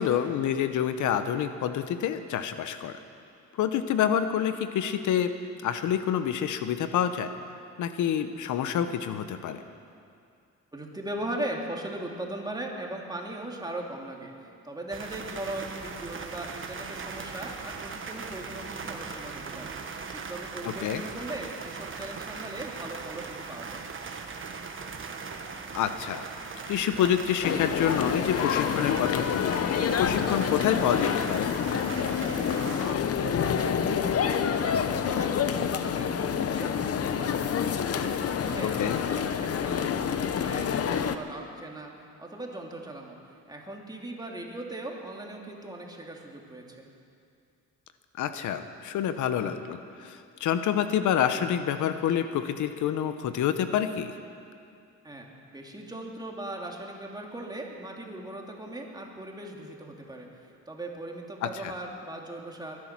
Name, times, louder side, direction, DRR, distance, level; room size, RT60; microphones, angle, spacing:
voice 1, 0.0-2.9 3.6-5.3 5.6-7.3 7.8-9.6 20.6-21.0 25.7-26.2 26.7-31.5 38.6-39.0 48.2-54.1 61.4-61.7, left 9 dB, 75° left, 10 dB, 0.9 m, -27 dB
voice 2, 10.7-19.7 20.1-23.9 32.9-37.5 37.9-41.9 42.2-43.2 43.5-46.9 55.0-60.3 60.7-62.8, right 1 dB, 15° right, 0 dB, 2.6 m, -39 dB
sound 1, 14.9-32.9, right 5 dB, 40° right, 1.4 m, -39 dB
sound 2, 27.4-41.2, left 7 dB, 50° left, 0.9 m, -28 dB
21.5 x 11.0 x 6.0 m, 2.4 s
cardioid pair, 90°, 30 cm